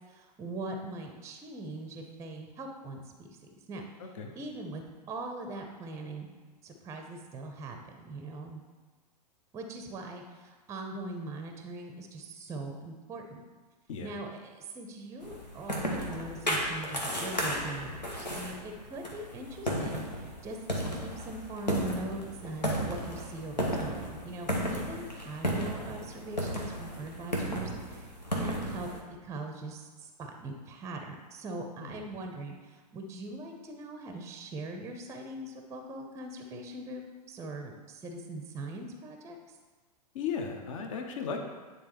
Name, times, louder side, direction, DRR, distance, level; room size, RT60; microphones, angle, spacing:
voice 1, 0.1-3.0 3.3-3.4 3.7-3.8 4.3-4.8 5.1-6.3 6.6-8.6 9.5-13.4 14.0-28.1 28.4-28.9 29.2-39.6, right 2 dB, 15° right, 4 dB, 0.6 m, -41 dB
voice 2, 4.0-4.3 13.9-14.1 31.8-32.0 40.1-41.4, left 6 dB, 50° left, 4 dB, 0.9 m, -36 dB
sound 1, 15.2-29.0, equal, 90° left, 1.1 m, -34 dB
9.5 x 3.7 x 3.0 m, 1.4 s
figure-of-eight pair, 100°, 21 cm